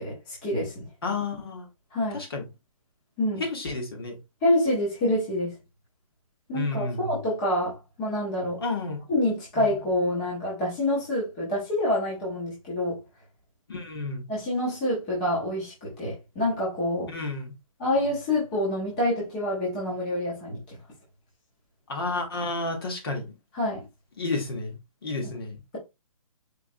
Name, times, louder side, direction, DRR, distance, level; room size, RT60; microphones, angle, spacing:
voice 1, 0.0-0.9 1.9-2.2 3.2-3.4 4.4-5.6 6.5-8.6 9.1-13.0 14.3-17.1 17.8-20.8 23.5-23.8 25.2-25.3, left 1 dB, 15° left, 0.9 m, -27 dB
voice 2, 1.0-1.7 2.1-2.4 3.4-4.2 6.5-7.0 8.6-9.0 9.6-9.7 13.7-14.2 17.1-17.5 21.9-23.2 24.2-24.7 25.0-25.6, left 3 dB, 45° left, 1.3 m, -31 dB
4.6 x 3.2 x 2.6 m
hypercardioid pair, 180°, 18 cm